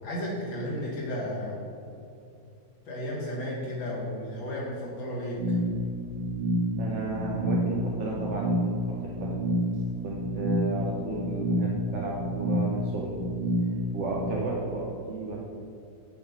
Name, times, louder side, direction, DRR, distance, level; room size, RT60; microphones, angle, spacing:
voice 1, 0.0-1.6 2.9-5.6, equal, 85° left, -5 dB, 2.5 m, -33 dB
sound 1, 5.4-14.4, equal, 85° right, 1.6 m, -29 dB
voice 2, 6.8-9.4 10.0-13.2 13.9-15.4, right 2 dB, 55° right, -2 dB, 0.8 m, -33 dB
7.1 x 5.3 x 5.1 m, 2.6 s
omnidirectional pair, 2.0 m